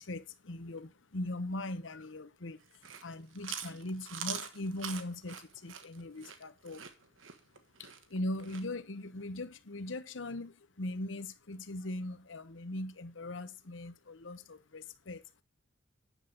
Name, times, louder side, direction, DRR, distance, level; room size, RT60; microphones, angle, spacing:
voice 1, 0.0-6.8 7.8-15.2, left 1 dB, 75° left, 1.0 m, -40 dB
Chewing mastication, 2.6-8.7, right 8 dB, 75° right, 1.3 m, -43 dB
10.0 x 7.6 x 3.9 m
head